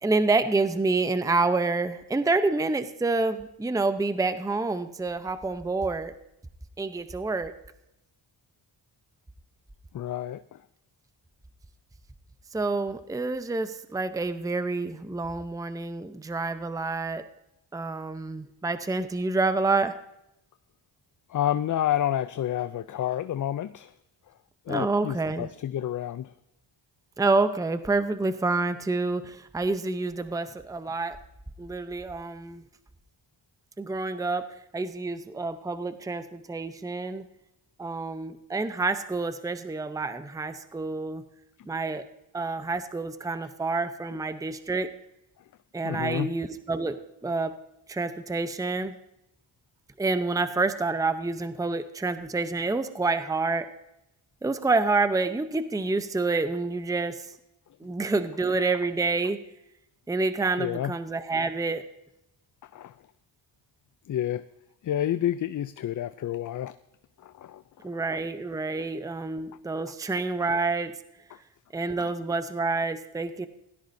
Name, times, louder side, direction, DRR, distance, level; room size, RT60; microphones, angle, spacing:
voice 1, 0.0-6.1 6.8-7.5 12.5-17.2 17.7-20.0 24.7-25.5 27.2-31.2 31.6-32.6 33.8-34.5 34.7-37.2 37.8-41.2 41.7-42.1 42.3-44.9 45.7-47.5 47.9-48.9 50.0-53.7 54.4-57.3 57.8-59.4 60.1-61.8 67.8-70.9 71.7-73.5, right 3 dB, 10° right, 11 dB, 0.7 m, -28 dB
voice 2, 9.9-10.6 21.3-23.9 24.7-26.3 45.8-46.3 60.6-60.9 62.7-62.9 64.1-64.4 64.8-66.7 67.2-67.6 72.0-72.1, left 11 dB, 45° left, 14 dB, 0.4 m, -29 dB
17.0 x 13.5 x 2.7 m, 0.84 s
cardioid pair, 70°, 45 cm